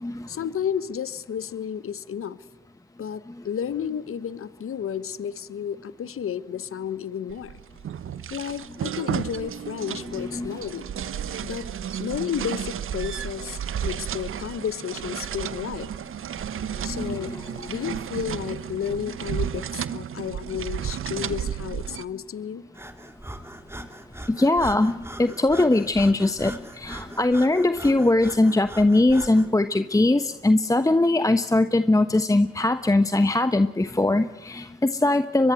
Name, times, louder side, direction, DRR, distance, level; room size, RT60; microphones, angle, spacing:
voice 1, 0.3-2.4 3.0-7.6 8.3-10.9 11.4-11.7 12.0-15.9 16.8-17.3 17.7-22.6, left 8 dB, 50° left, 16 dB, 1.3 m, -32 dB
sound 1, 7.3-22.0, right 9 dB, 45° right, 0.9 m, -33 dB
voice 2, 10.1-10.5 16.9-17.8 24.3-35.5, left 2 dB, 10° left, 10 dB, 1.1 m, -21 dB
Breathing, 22.7-29.5, right 1 dB, 10° right, 3.2 m, -41 dB
25.0 x 23.0 x 8.0 m, 1.0 s
hypercardioid pair, 55°, 29 cm